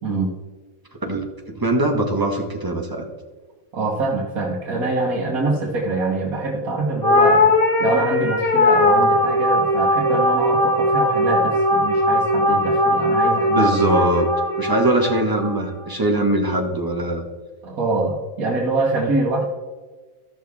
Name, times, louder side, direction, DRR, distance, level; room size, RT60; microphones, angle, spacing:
voice 1, 0.0-0.3 3.7-7.5 7.8-13.7 17.6-19.4, right 3 dB, 85° right, -2 dB, 1.7 m, -24 dB
voice 2, 1.0-3.0 13.5-14.3 14.6-17.2, right 1 dB, 15° right, 1 dB, 1.3 m, -21 dB
sound 1, 7.0-15.6, left 1 dB, 40° left, 1.9 m, -19 dB
14.0 x 6.2 x 3.5 m, 1.3 s
omnidirectional pair, 1.5 m